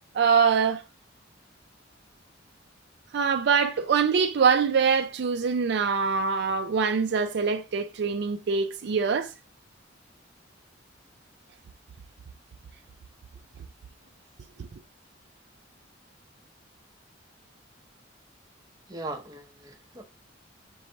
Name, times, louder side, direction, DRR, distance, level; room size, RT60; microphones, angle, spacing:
voice 1, 0.1-0.8 3.1-9.3 14.6-14.7, right 6 dB, 60° right, 0.4 m, -24 dB
voice 2, 18.9-20.0, right 2 dB, 20° right, 0.6 m, -39 dB
5.3 x 3.1 x 2.7 m
head